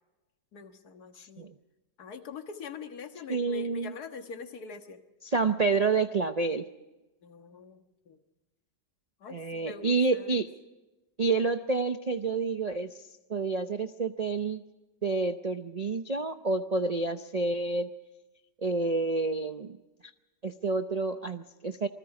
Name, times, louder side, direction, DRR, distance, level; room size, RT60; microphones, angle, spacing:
voice 1, 0.5-1.5 2.0-5.0 7.2-8.2 9.2-10.4, left 5 dB, 65° left, 6 dB, 2.0 m, -44 dB
voice 2, 1.2-1.5 3.3-3.9 5.2-6.6 9.3-10.5 11.2-12.9 13.3-14.6 15.0-17.9 18.6-19.8 20.4-21.9, right 3 dB, 80° right, 8 dB, 0.3 m, -29 dB
27.5 x 20.5 x 4.8 m, 1.1 s
omnidirectional pair, 1.8 m